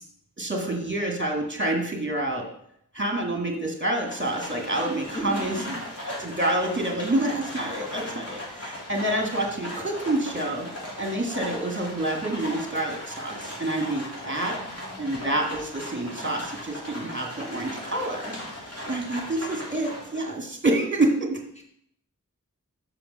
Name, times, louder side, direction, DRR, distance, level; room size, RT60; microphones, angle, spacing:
voice 1, 0.4-2.5 2.9-5.6 6.0-10.7 11.0-14.6 15.0-18.3 18.9-21.4, right 1 dB, 35° right, 1 dB, 1.7 m, -27 dB
Livestock farm animals working animals, 4.0-20.4, left 1 dB, 45° left, 3.0 m, -38 dB
voice 2, 5.1-5.7 14.4-15.1 21.6-21.7, left 1 dB, 20° left, -1 dB, 1.8 m, -37 dB
6.0 x 5.0 x 6.2 m, 0.71 s
wide cardioid pair, 40°, 33 cm